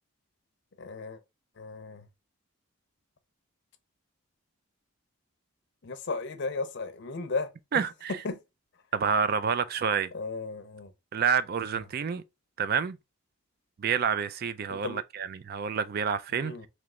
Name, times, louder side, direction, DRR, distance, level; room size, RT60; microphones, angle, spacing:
voice 1, 0.8-1.2 1.6-2.1 5.8-7.8 8.1-8.4 10.1-10.9 14.7-15.0 16.4-16.7, left 3 dB, 55° left, 0.6 m, -35 dB
voice 2, 7.7-8.1 8.9-10.1 11.1-12.2 12.6-13.0 13.8-16.5, right 6 dB, 45° right, 0.3 m, -28 dB
3.2 x 3.0 x 3.6 m
head